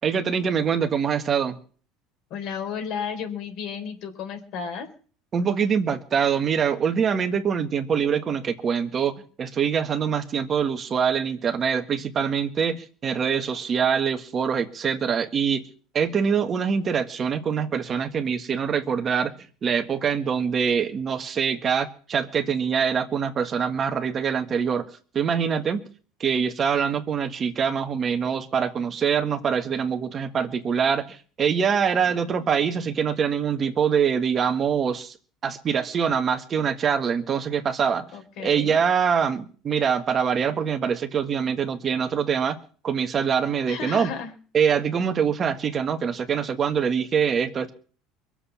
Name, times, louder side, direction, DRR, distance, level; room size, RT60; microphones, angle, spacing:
voice 1, 0.0-1.6 5.3-15.7 15.9-19.3 19.6-24.9 25.1-25.8 26.2-35.1 35.4-38.0 38.4-42.6 42.8-44.1 44.5-47.7, right 7 dB, 35° right, 1.5 m, -24 dB
voice 2, 2.3-4.9 32.1-32.6 38.1-38.8 43.7-44.3, left 6 dB, 60° left, 3.7 m, -33 dB
22.0 x 7.6 x 7.3 m
supercardioid pair, 120°, 0 cm